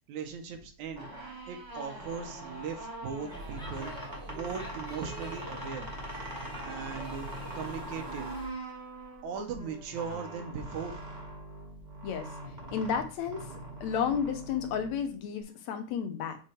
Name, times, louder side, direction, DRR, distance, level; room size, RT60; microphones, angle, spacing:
voice 1, 0.1-1.1 1.5-3.9 4.3-5.9 6.6-7.3 7.5-8.3 9.2-11.0, right 6 dB, 75° right, 4 dB, 2.3 m, -38 dB
sound 1, 0.9-15.4, right 1 dB, 45° right, 0.5 m, -42 dB
Speech / Shout / Subway metro underground, 3.3-8.5, equal, 5° left, 0.6 m, -45 dB
voice 2, 12.7-13.4 13.8-16.4, left 7 dB, 70° left, 7 dB, 2.0 m, -32 dB
7.9 x 3.2 x 4.4 m, 0.37 s
omnidirectional pair, 3.5 m